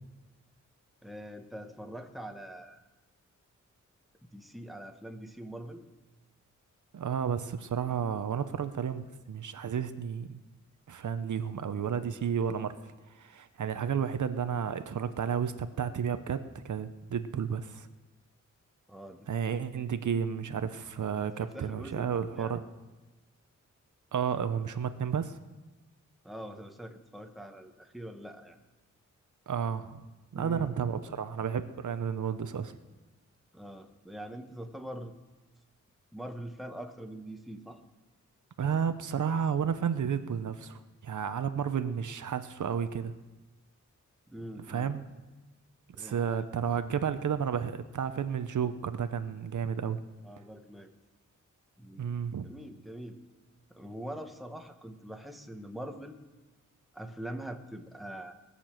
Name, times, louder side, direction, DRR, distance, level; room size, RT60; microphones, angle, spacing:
voice 1, 1.0-2.8 4.2-5.8 13.6-13.9 18.9-19.6 21.4-22.6 26.2-28.6 30.3-30.8 33.5-35.1 36.1-37.8 44.3-44.9 45.9-46.4 50.2-50.9 51.8-52.1 52.4-53.2 53.7-56.2 56.9-58.3, right 1 dB, ahead, 5 dB, 1.2 m, -43 dB
voice 2, 6.9-10.4 10.9-12.7 13.1-16.4 16.6-17.9 19.3-22.6 24.1-25.4 29.5-30.0 30.3-32.7 38.6-43.1 44.7-45.1 46.0-50.0 52.0-52.5, right 7 dB, 70° right, 11 dB, 0.8 m, -32 dB
19.5 x 6.8 x 7.5 m, 1.1 s
wide cardioid pair, 95°, 31 cm